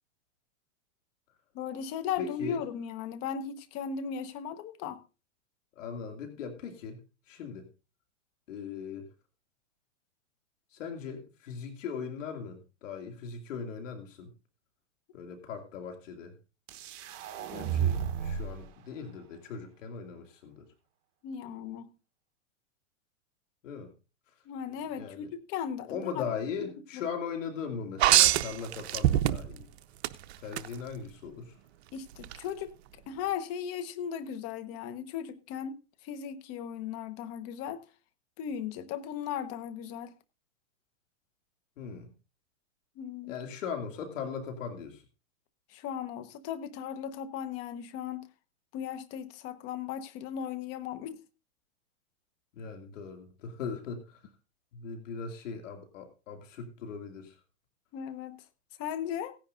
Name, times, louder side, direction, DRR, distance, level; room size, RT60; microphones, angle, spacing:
voice 1, 1.5-5.0 21.2-21.9 24.4-26.2 26.6-27.0 31.9-32.7 33.1-35.8 36.0-37.8 38.4-40.1 43.0-43.3 45.7-48.3 48.7-51.2 57.9-58.4 58.8-59.4, left 8 dB, 40° left, 1.2 m, -37 dB
voice 2, 2.2-2.6 5.8-7.0 7.3-7.7 8.5-9.1 10.7-14.3 15.1-16.4 17.5-20.7 23.6-23.9 24.9-25.3 25.8-29.7 30.4-31.6 41.8-42.1 43.3-45.0 52.5-54.2 54.7-57.4, left 6 dB, 75° left, 2.5 m, -39 dB
sound 1, 16.7-18.6, right 8 dB, 40° right, 1.6 m, -32 dB
sound 2, 28.0-29.6 30.0-30.7 32.2-32.4, right 14 dB, 55° right, 0.7 m, -23 dB
17.0 x 10.5 x 2.6 m
hypercardioid pair, 130°, 39 cm